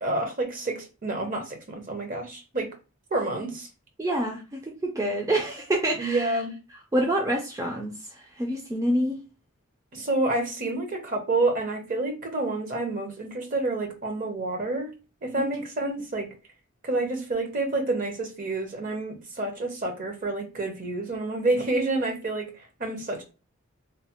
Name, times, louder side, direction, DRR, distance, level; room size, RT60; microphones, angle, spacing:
voice 1, 0.0-2.7 3.1-3.7 6.0-6.5 9.9-14.9 15.2-16.3 16.8-23.2, right 2 dB, 45° right, 0.8 m, -28 dB
voice 2, 4.0-6.4 6.9-9.2 15.4-15.5, right 1 dB, 15° right, 0.4 m, -27 dB
3.1 x 2.0 x 2.8 m
head